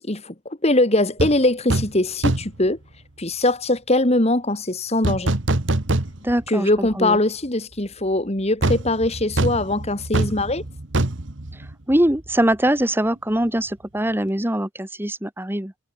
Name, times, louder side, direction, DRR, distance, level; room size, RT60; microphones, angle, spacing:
voice 1, 0.0-2.8 3.2-5.3 6.5-10.6, left 2 dB, 35° left, 2.4 m, -21 dB
sound 1, 1.2-1.4 1.7-2.0 2.2-2.6 5.0-6.5 6.9-7.0 8.6-12.3 12.5-12.7, right 2 dB, 75° right, 1.8 m, -24 dB
voice 2, 6.2-7.2 11.9-15.7, right 1 dB, 10° right, 1.5 m, -22 dB
head